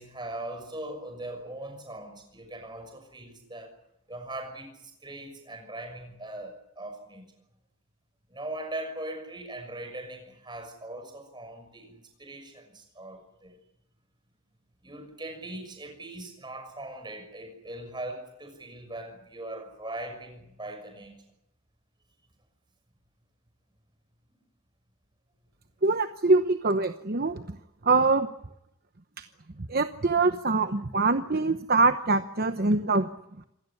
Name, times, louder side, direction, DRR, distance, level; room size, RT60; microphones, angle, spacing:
voice 1, 0.0-3.7 4.1-7.3 8.3-13.6 14.8-21.1, right 1 dB, 20° right, 5 dB, 6.2 m, -40 dB
voice 2, 25.8-27.4 27.8-28.3 29.2-29.3 29.7-33.1, right 3 dB, 45° right, 9 dB, 1.0 m, -24 dB
27.0 x 17.0 x 9.8 m, 0.83 s
head